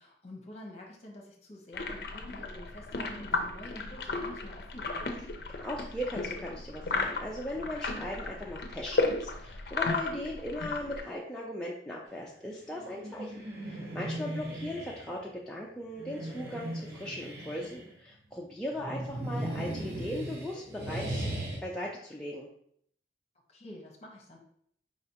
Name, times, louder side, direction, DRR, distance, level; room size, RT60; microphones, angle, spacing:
voice 1, 0.0-5.1 23.5-24.4, left 1 dB, 35° left, 0 dB, 0.9 m, -48 dB
sound 1, 1.7-11.0, left 3 dB, 60° left, 0.5 m, -34 dB
voice 2, 5.6-13.3 13.6-21.2 21.6-22.5, left 1 dB, 5° left, -4 dB, 0.4 m, -38 dB
sound 2, 12.7-15.1 15.9-17.9 18.7-21.6, right 1 dB, 60° right, 0.9 m, -37 dB
4.8 x 3.3 x 2.8 m, 0.66 s
head